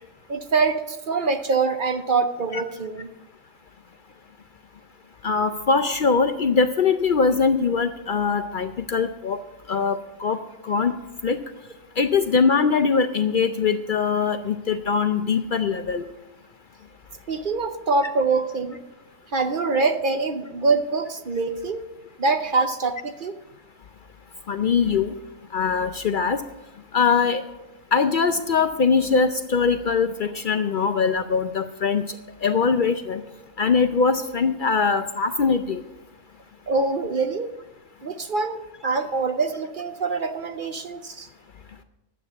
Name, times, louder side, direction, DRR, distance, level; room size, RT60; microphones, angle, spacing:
voice 1, 0.3-3.1 17.3-18.8 19.3-21.9 22.2-23.4 36.7-37.5 38.0-41.3, right 4 dB, 50° right, 8 dB, 0.8 m, -24 dB
voice 2, 5.2-9.4 9.7-10.4 10.6-10.9 11.2-11.4 12.0-16.0 24.5-25.1 25.5-26.4 26.9-27.4 27.9-32.2 32.4-33.2 33.6-35.8, left 5 dB, 55° left, 9 dB, 0.6 m, -22 dB
12.0 x 8.2 x 7.0 m, 1.0 s
omnidirectional pair, 1.2 m